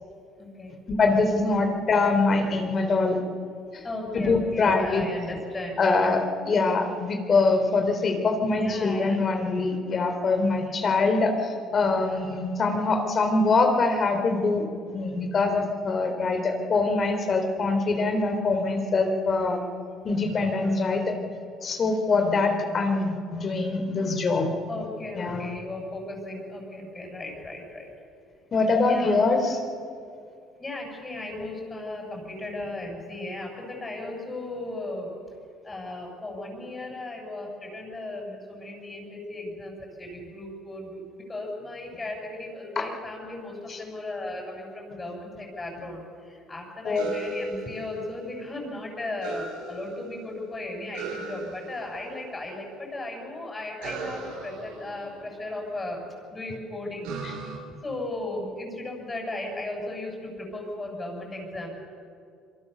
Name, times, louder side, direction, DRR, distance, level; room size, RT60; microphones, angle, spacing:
voice 1, 0.4-0.8 1.5-1.6 3.8-5.8 8.6-9.2 24.7-27.9 28.9-29.2 30.6-35.2 35.6-56.0 56.3-57.1 57.8-61.7, left 2 dB, 20° left, 0 dB, 7.4 m, -36 dB
voice 2, 1.0-3.2 3.7-3.8 4.1-5.1 5.8-19.6 20.0-21.1 21.6-24.5 25.1-25.5 28.5-29.6 42.8-42.9 43.7-43.8 46.8-47.1, left 3 dB, 35° left, 5 dB, 3.8 m, -24 dB
sound 1, 47.0-48.4 49.2-50.4 50.9-52.2 53.8-55.9 57.0-57.6, right 4 dB, 85° right, 5.6 m, -38 dB
26.5 x 23.5 x 6.9 m, 2.3 s
cardioid pair, 110°, 0 cm